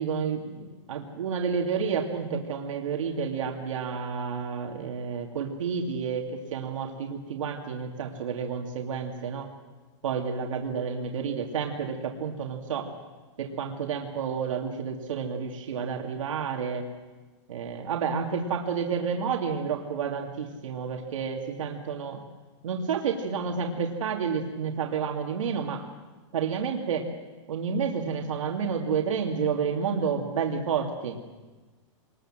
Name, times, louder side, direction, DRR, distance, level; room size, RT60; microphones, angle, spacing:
voice 1, 0.0-9.5 10.0-12.9 13.4-16.9 17.5-22.2 22.6-25.8 26.3-27.1 27.5-31.2, right 6 dB, 85° right, 1 dB, 2.7 m, -30 dB
23.5 x 21.0 x 7.7 m, 1.3 s
supercardioid pair, 175°, 16 cm